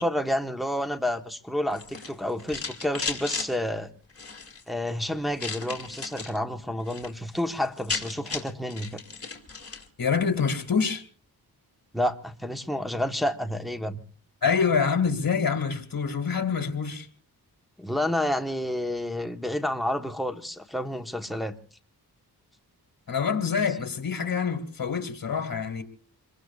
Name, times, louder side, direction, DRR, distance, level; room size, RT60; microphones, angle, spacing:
voice 1, 0.0-3.9 4.7-8.9 11.9-14.0 17.8-21.5, left 1 dB, ahead, 1.2 m, -29 dB
sound 1, 1.7-3.5 4.1-4.6 5.4-6.4 6.7-7.1 7.4-7.5 7.7-9.9, left 4 dB, 35° left, 2.6 m, -35 dB
voice 2, 10.0-11.0 14.4-17.1 23.1-25.8, left 6 dB, 55° left, 2.2 m, -26 dB
26.5 x 22.5 x 2.4 m
wide cardioid pair, 80°, 41 cm